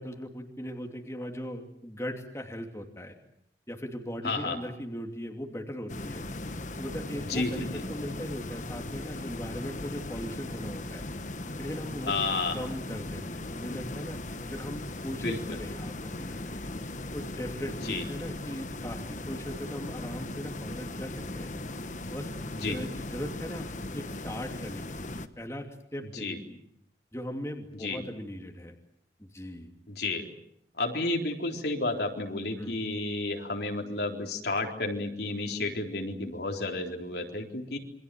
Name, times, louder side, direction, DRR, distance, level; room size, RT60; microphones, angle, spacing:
voice 1, 0.0-3.1 3.7-6.3 6.8-11.0 11.6-16.6 17.1-21.5 22.1-22.3 22.6-25.1 25.4-25.7 25.9-26.6 27.1-28.8 29.2-29.7 32.6-32.8, equal, 15° left, 2 dB, 2.8 m, -39 dB
voice 2, 4.2-4.6 7.2-7.8 12.1-12.5 15.2-15.6 17.8-18.0 22.5-22.8 26.1-26.4 27.8-28.0 29.9-30.3 30.8-37.8, left 2 dB, 65° left, 2 dB, 3.9 m, -31 dB
sound 1, 5.9-25.3, left 2 dB, 45° left, 1.3 m, -38 dB
28.0 x 25.0 x 7.8 m, 0.71 s
head